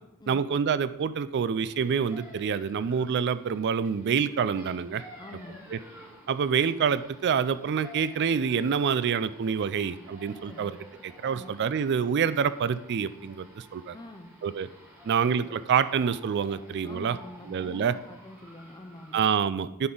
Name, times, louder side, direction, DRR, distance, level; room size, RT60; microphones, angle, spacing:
voice 1, 0.3-5.0 5.7-5.8 6.3-10.8 11.0-13.9 14.4-14.7 15.0-17.2 17.5-17.9 19.1-19.9, right 7 dB, 50° right, 15 dB, 0.3 m, -27 dB
sound 1, 1.6-19.2, equal, 10° right, 1.7 m, -52 dB
voice 2, 5.2-5.7 10.4-10.7 11.3-11.5 13.9-14.4 16.8-19.2, left 1 dB, 20° left, 6 dB, 0.6 m, -45 dB
9.4 x 6.1 x 3.9 m, 0.91 s
head